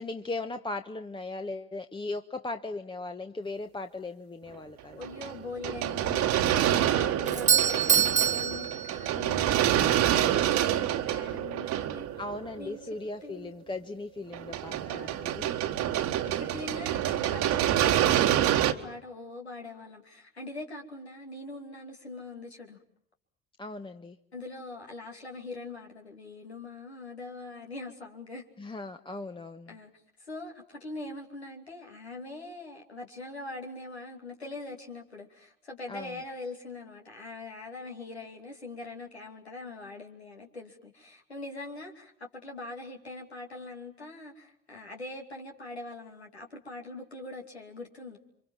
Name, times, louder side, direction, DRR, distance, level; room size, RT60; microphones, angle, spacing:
voice 1, 0.0-5.0 12.2-15.5 23.6-24.2 28.6-29.7 35.9-36.2, left 2 dB, 15° left, 1.1 m, -38 dB
voice 2, 5.0-12.1 12.6-12.8 13.2-13.6 14.8-22.8 24.3-28.5 29.7-29.9 30.2-48.2, left 2 dB, 90° left, 2.7 m, -42 dB
sound 1, 5.0-12.9 14.3-18.7, right 11 dB, 60° right, 1.6 m, -27 dB
Doorbell, 7.3-9.4, right 8 dB, 25° right, 1.1 m, -25 dB
29.5 x 25.0 x 7.4 m
figure-of-eight pair, 55°, 32 cm